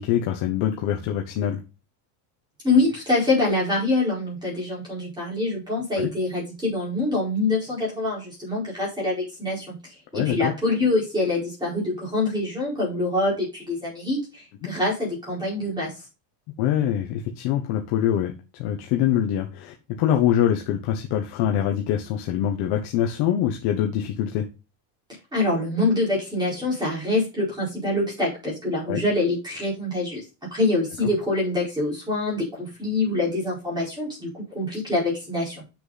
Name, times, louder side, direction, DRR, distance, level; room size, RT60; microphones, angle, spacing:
voice 1, 0.0-1.6 6.0-6.1 10.1-10.5 16.6-18.3 18.6-24.5 28.9-29.0, left 10 dB, 55° left, 4 dB, 1.2 m, -24 dB
voice 2, 2.6-9.7 10.1-15.9 25.3-30.2 30.5-35.6, left 2 dB, 10° right, -5 dB, 4.7 m, -25 dB
7.7 x 6.7 x 4.1 m, 0.28 s
cardioid pair, 180°, 49 cm